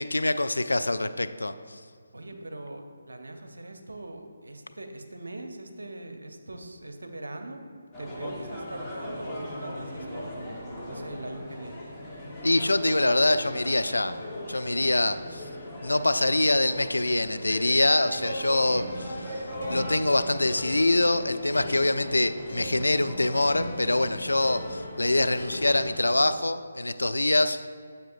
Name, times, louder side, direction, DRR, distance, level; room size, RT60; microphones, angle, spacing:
voice 1, 0.0-1.5 12.4-14.2 14.5-15.4 15.8-19.4 19.7-27.7, left 2 dB, 70° left, 11 dB, 0.3 m, -24 dB
voice 2, 2.1-7.6 8.0-11.9 15.0-15.1, right 1 dB, 65° right, 6 dB, 0.7 m, -41 dB
sound 1, 7.9-26.1, equal, 5° left, 1.1 m, -39 dB
sound 2, 18.7-26.3, left 1 dB, 55° left, 1.6 m, -39 dB
9.3 x 7.3 x 2.5 m, 2.2 s
figure-of-eight pair, 145°, 0 cm